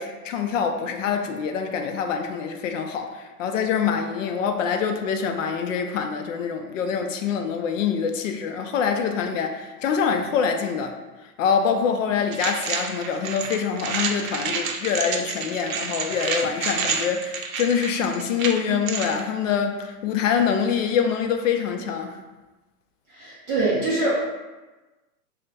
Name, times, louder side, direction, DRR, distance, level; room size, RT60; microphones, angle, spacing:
voice 1, 0.0-10.9 11.4-22.2, left 6 dB, 55° left, 5 dB, 0.5 m, -25 dB
sound 1, 12.3-19.2, right 5 dB, 65° right, 0.6 m, -29 dB
voice 2, 23.1-24.1, right 2 dB, 20° right, -7 dB, 0.4 m, -24 dB
3.3 x 2.2 x 4.0 m, 1.2 s
hypercardioid pair, 135°, 45 cm